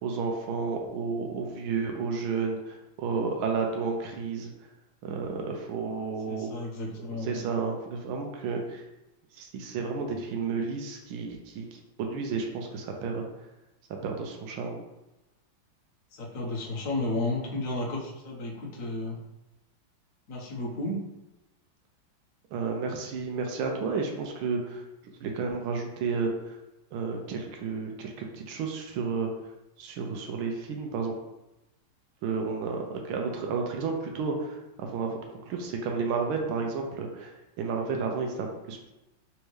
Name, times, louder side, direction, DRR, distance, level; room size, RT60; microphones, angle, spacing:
voice 1, 0.0-4.5 5.0-6.5 7.2-8.8 9.3-13.2 14.0-14.8 22.5-26.6 26.9-29.3 29.8-31.1 32.2-35.2 35.5-38.9, right 5 dB, 85° right, 2 dB, 1.5 m, -32 dB
voice 2, 6.3-7.4 16.1-19.2 20.3-21.0, left 2 dB, 50° left, -3 dB, 1.2 m, -32 dB
4.1 x 3.5 x 3.1 m, 0.96 s
omnidirectional pair, 2.2 m